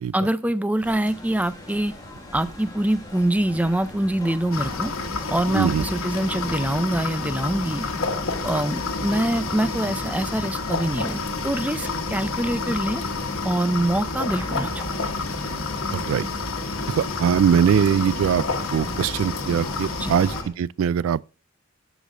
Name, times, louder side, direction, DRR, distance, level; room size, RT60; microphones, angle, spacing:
voice 1, 0.1-1.9 2.3-4.9 5.3-7.9 8.4-13.0 13.4-14.9 20.0-20.2, right 1 dB, 5° right, 0.5 m, -24 dB
sound 1, 0.8-20.5, left 1 dB, 20° left, 1.5 m, -40 dB
sound 2, 0.8-20.2, right 2 dB, 40° right, 1.0 m, -48 dB
sound 3, 4.5-20.4, left 3 dB, 85° left, 1.2 m, -29 dB
voice 2, 5.5-5.8 15.9-16.3 16.9-18.4 18.7-21.3, right 8 dB, 75° right, 0.3 m, -21 dB
13.5 x 5.1 x 2.6 m
head